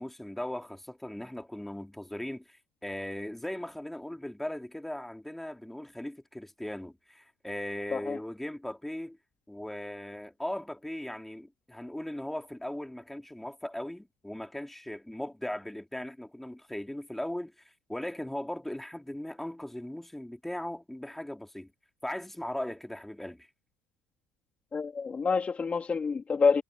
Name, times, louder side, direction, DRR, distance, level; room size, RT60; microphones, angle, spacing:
voice 1, 0.0-9.2 9.5-17.5 17.9-21.7 22.0-23.5, left 1 dB, 5° left, 4.6 m, -38 dB
voice 2, 24.7-26.6, left 5 dB, 25° left, 2.6 m, -27 dB
hypercardioid pair, 65°, 5 cm